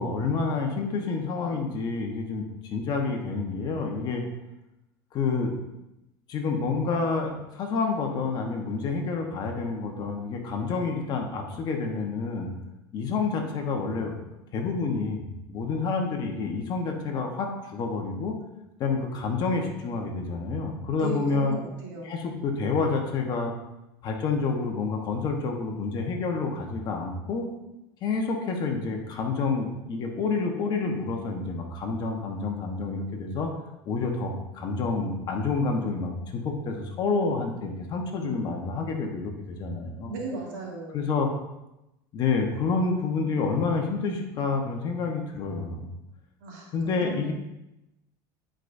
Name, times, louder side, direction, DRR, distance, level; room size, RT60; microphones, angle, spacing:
voice 1, 0.0-4.2 5.1-5.5 6.3-12.5 12.9-14.2 14.5-18.4 18.8-21.6 22.0-23.5 24.0-27.5 28.0-33.5 33.8-40.1 40.9-41.3 42.1-45.9 46.7-47.3, left 4 dB, 45° left, 2 dB, 1.3 m, -28 dB
voice 2, 21.0-22.1 40.1-41.0 46.4-47.3, right 2 dB, 85° right, -3 dB, 2.3 m, -36 dB
10.5 x 5.1 x 2.8 m, 0.93 s
supercardioid pair, 125°, 10 cm